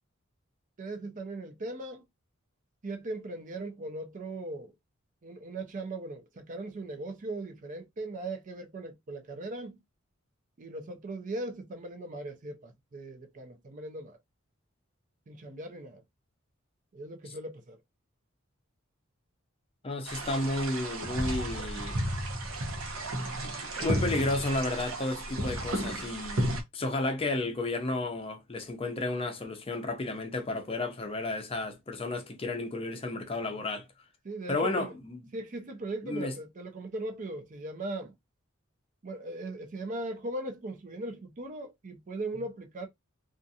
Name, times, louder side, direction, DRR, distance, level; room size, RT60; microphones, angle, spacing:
voice 1, 0.8-2.0 2.8-4.7 5.2-9.8 10.6-14.2 15.3-16.0 16.9-17.8 23.8-24.0 34.2-34.9 35.3-38.1 39.0-42.9, right 2 dB, 40° right, 0.5 m, -39 dB
voice 2, 19.8-22.0 23.8-33.9 34.5-35.3 36.0-36.3, left 2 dB, 30° left, 0.5 m, -32 dB
sound 1, 20.1-26.6, right 1 dB, 90° right, 0.8 m, -33 dB
2.5 x 2.4 x 2.6 m
head